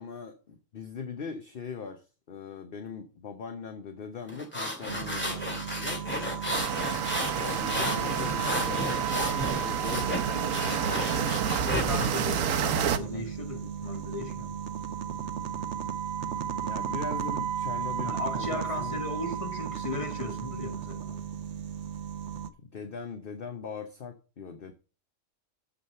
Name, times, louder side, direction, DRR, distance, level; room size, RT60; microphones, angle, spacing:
voice 1, 0.0-6.0 7.3-11.5 11.8-12.3 12.6-13.3 16.6-19.0 22.6-24.7, left 5 dB, 50° left, 1.0 m, -40 dB
sound 1, 4.3-12.2, equal, 10° left, 2.2 m, -33 dB
sound 2, 4.9-22.5, right 9 dB, 65° right, 1.0 m, -35 dB
sound 3, 6.5-13.0, right 8 dB, 90° right, 1.1 m, -30 dB
voice 2, 11.7-12.5 12.9-14.6 18.0-21.3, left 2 dB, 25° left, 1.5 m, -36 dB
7.2 x 6.4 x 5.6 m
omnidirectional pair, 1.4 m